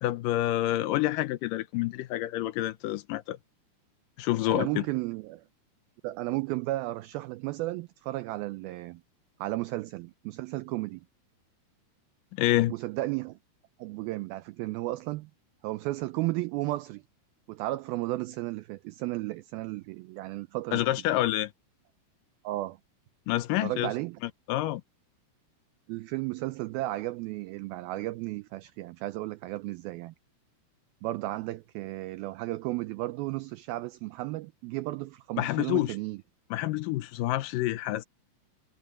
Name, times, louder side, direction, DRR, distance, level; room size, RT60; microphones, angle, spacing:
voice 1, 0.0-3.4 4.2-4.8 12.4-12.7 20.7-21.5 23.3-23.9 24.2-24.8 35.4-36.0 36.5-38.0, left 15 dB, 85° left, 1.9 m, -28 dB
voice 2, 4.5-5.4 6.0-9.0 9.4-11.0 12.7-13.4 13.8-15.3 15.6-17.0 17.5-20.8 22.4-22.8 23.6-24.2 25.9-30.1 31.0-36.2, right 18 dB, 90° right, 2.1 m, -34 dB
omnidirectional pair, 4.9 m